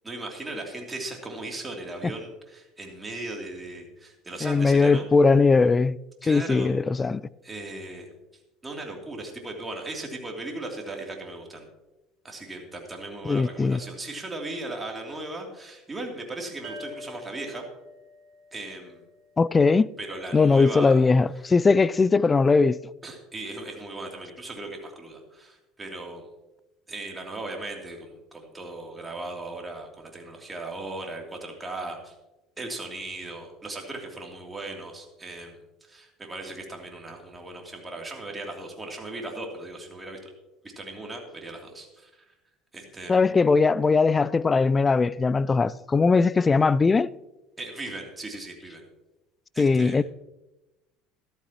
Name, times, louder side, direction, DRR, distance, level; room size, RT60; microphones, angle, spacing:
voice 1, 0.0-5.1 6.2-6.7 7.4-8.1 8.6-11.7 12.2-17.6 18.5-19.0 20.0-21.0 23.0-26.3 26.9-32.1 32.6-40.3 40.8-42.2 42.7-43.3 47.6-48.9 49.5-50.0, right 2 dB, 20° right, 2.9 m, -37 dB
voice 2, 4.4-6.0 6.3-7.2 13.3-13.8 19.4-19.9 20.3-22.8 43.1-47.1 49.6-50.0, left 4 dB, 25° left, 0.3 m, -20 dB
sound 1, 16.6-20.1, left 1 dB, 50° right, 1.9 m, -46 dB
13.5 x 12.5 x 2.9 m
hypercardioid pair, 70°, 0 cm